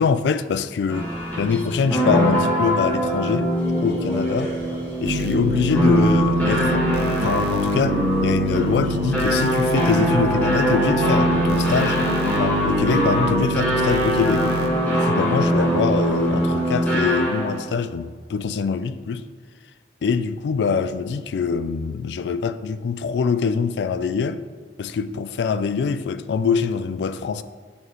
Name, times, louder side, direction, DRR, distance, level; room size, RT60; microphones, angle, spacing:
voice 1, 0.0-3.5 3.8-4.5 5.0-12.0 12.4-14.5 14.9-19.2 20.0-24.4 24.8-27.4, left 5 dB, 75° left, 0.3 m, -24 dB
sound 1, 0.9-17.6, equal, 10° left, 1.6 m, -22 dB
sound 2, 5.0-14.7, right 1 dB, 65° right, 0.5 m, -27 dB
8.2 x 4.9 x 3.1 m
head